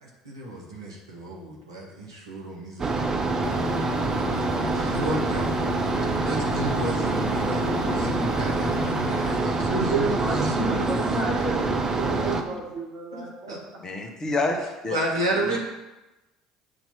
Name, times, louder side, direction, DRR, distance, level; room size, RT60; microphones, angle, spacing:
voice 1, 0.0-3.1 4.7-5.7 6.0-11.5 12.3-12.4 13.1-13.6 14.9-15.6, right 1 dB, 85° right, -3 dB, 1.2 m, -32 dB
sound 1, 2.8-12.4, right 3 dB, 25° right, 0.8 m, -26 dB
Aircraft, 3.4-9.4, left 8 dB, 70° left, 0.4 m, -35 dB
voice 2, 9.7-13.6, right 2 dB, 65° right, -4 dB, 2.0 m, -30 dB
voice 3, 13.8-15.0 15.5-15.6, left 2 dB, 30° left, 3 dB, 1.1 m, -28 dB
7.9 x 2.9 x 5.8 m, 1.0 s
figure-of-eight pair, 60°, 2 cm